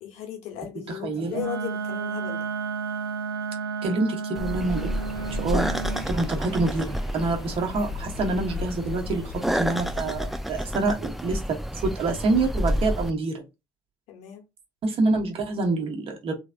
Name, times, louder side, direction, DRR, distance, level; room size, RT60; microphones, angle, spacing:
voice 1, 0.0-2.5 14.1-14.4, left 11 dB, 60° left, 1.4 m, -36 dB
voice 2, 0.9-1.4 3.8-4.9 5.4-5.8 6.1-13.4 14.8-16.3, right 3 dB, 50° right, 1.4 m, -26 dB
Wind instrument woodwind instrument, 1.3-6.1, right 5 dB, 85° right, 0.4 m, -32 dB
sound 1, 4.3-13.1, equal, ahead, 0.6 m, -30 dB
sound 2, 4.5-10.4, left 8 dB, 40° left, 1.0 m, -40 dB
3.4 x 3.3 x 2.6 m
figure-of-eight pair, 50°, 12 cm